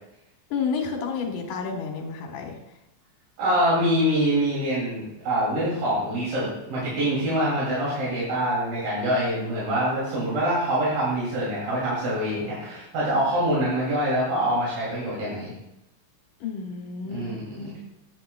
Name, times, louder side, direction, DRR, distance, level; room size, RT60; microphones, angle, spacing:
voice 1, 0.5-2.6 16.4-17.3 17.6-17.7, left 5 dB, 75° left, 2 dB, 2.9 m, -30 dB
voice 2, 3.4-15.5 17.1-17.8, equal, 80° right, -7 dB, 4.4 m, -25 dB
11.0 x 8.7 x 2.2 m, 0.87 s
omnidirectional pair, 3.9 m